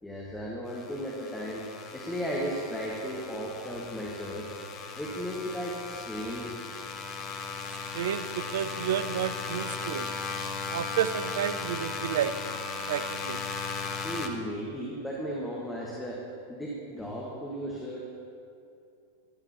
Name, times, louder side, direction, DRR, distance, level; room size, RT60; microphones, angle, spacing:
voice 1, 0.0-1.6 1.9-4.6 5.0-6.6 14.0-16.2 16.5-18.0, equal, 10° left, -4 dB, 1.6 m, -35 dB
sound 1, 0.7-14.3, left 4 dB, 35° left, 1.0 m, -37 dB
voice 2, 7.9-10.1 10.7-12.3 12.9-13.4, right 10 dB, 60° right, 13 dB, 0.5 m, -31 dB
14.5 x 11.5 x 3.0 m, 2.5 s
figure-of-eight pair, 90°, 0 cm